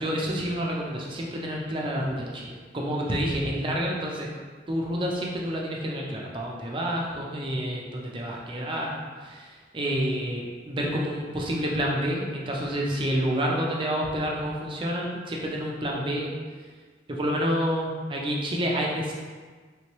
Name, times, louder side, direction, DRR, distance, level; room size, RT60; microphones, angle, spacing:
voice 1, 0.0-4.3 4.7-8.9 9.2-16.3 17.1-19.1, equal, 25° right, -2 dB, 0.4 m, -29 dB
3.3 x 3.1 x 2.9 m, 1.5 s
head